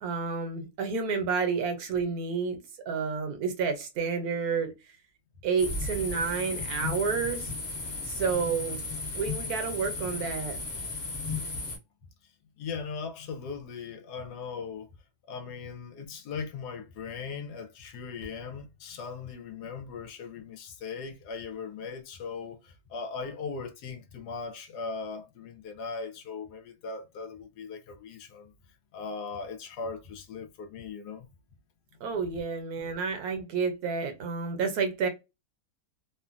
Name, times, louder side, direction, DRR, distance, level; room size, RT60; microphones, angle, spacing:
voice 1, 0.0-4.7 5.4-7.5 8.0-8.8 9.1-10.6 32.0-35.1, right 5 dB, 70° right, 1.2 m, -30 dB
sound 1, 5.6-11.8, left 3 dB, 40° left, 1.1 m, -35 dB
voice 2, 12.6-14.9 15.3-28.5 28.9-31.3, left 5 dB, 85° left, 1.3 m, -39 dB
3.0 x 2.2 x 2.4 m
omnidirectional pair, 1.7 m